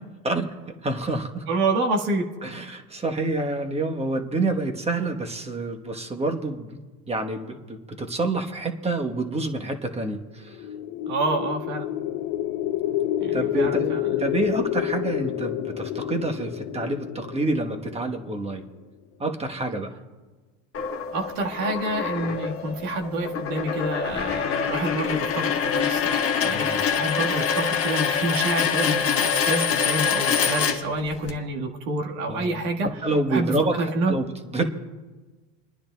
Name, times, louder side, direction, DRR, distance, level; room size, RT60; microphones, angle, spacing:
voice 1, 0.8-1.5 2.4-6.8 7.1-10.6 13.3-18.6 19.2-19.9 26.5-26.8 32.3-34.3 34.5-34.6, right 2 dB, 15° right, 4 dB, 1.1 m, -28 dB
voice 2, 1.5-2.3 11.1-11.9 13.2-14.1 21.1-32.9 33.3-34.1, right 2 dB, 75° right, 0 dB, 1.7 m, -28 dB
sound 1, 10.5-18.6, left 12 dB, 45° left, 0.7 m, -29 dB
sound 2, 20.7-31.3, left 7 dB, 30° left, 1.3 m, -25 dB
29.5 x 10.0 x 2.2 m, 1.3 s
supercardioid pair, 110°, 46 cm